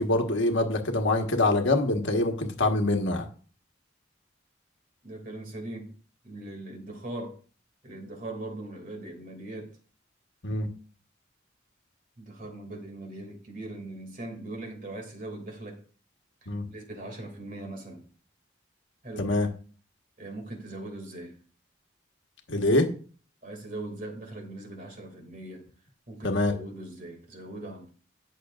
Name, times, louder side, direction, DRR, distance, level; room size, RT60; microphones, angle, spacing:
voice 1, 0.0-3.3 10.4-10.7 16.5-16.6 19.2-19.5 22.5-22.9 26.2-26.5, left 2 dB, 75° left, 4 dB, 1.4 m, -24 dB
voice 2, 5.0-5.9 6.2-7.4 7.8-9.8 12.2-15.8 16.4-18.1 19.0-19.5 20.2-21.4 23.4-25.7 26.1-27.9, right 2 dB, 40° right, 2 dB, 2.5 m, -40 dB
18.0 x 6.6 x 2.5 m, 0.40 s
head